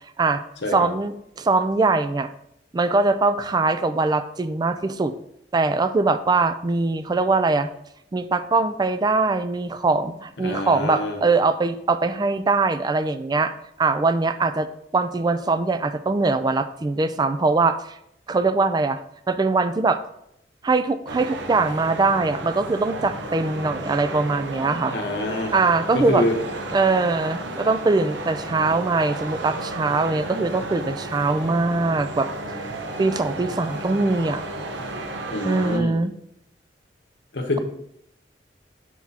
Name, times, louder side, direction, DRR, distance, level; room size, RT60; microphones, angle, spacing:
voice 1, 0.7-2.3 2.7-5.1 5.5-7.7 8.1-18.0 18.3-19.0 19.3-20.0 20.6-24.9 25.5-26.2 26.7-32.3 32.6-32.7 33.0-34.4 35.4-36.1, right 3 dB, 25° right, 11 dB, 0.3 m, -22 dB
voice 2, 10.4-11.2 24.9-25.5 25.9-26.4 35.3-36.0 37.3-37.6, left 2 dB, 75° left, 2 dB, 0.9 m, -26 dB
sound 1, 21.1-35.8, right 2 dB, 90° right, 0.8 m, -33 dB
7.4 x 6.0 x 2.8 m, 0.76 s
head